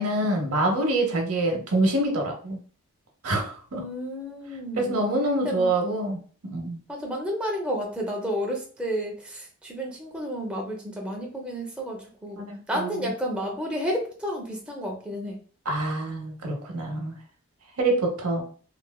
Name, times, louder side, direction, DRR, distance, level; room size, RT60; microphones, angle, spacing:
voice 1, 0.0-2.6 3.2-3.8 4.8-6.8 12.3-13.1 15.7-17.1 17.8-18.4, right 1 dB, 85° right, 2 dB, 0.7 m, -26 dB
voice 2, 3.7-5.1 5.4-6.0 6.9-15.4, equal, 5° right, -1 dB, 0.4 m, -31 dB
3.0 x 2.1 x 2.2 m, 0.43 s
head